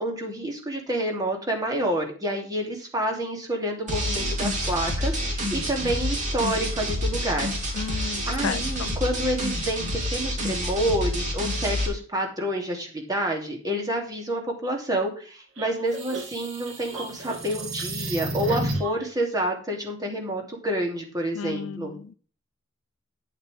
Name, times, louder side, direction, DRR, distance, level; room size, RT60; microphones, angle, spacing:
voice 1, 0.0-7.5 7.8-21.9, right 1 dB, 20° right, 2.7 m, -28 dB
sound 1, 3.9-11.9, equal, 40° right, 3.1 m, -28 dB
voice 2, 7.7-9.0 21.3-22.1, left 7 dB, 80° left, 0.4 m, -34 dB
sound 2, 15.6-19.1, right 1 dB, 65° right, 2.2 m, -32 dB
9.9 x 8.9 x 3.4 m
head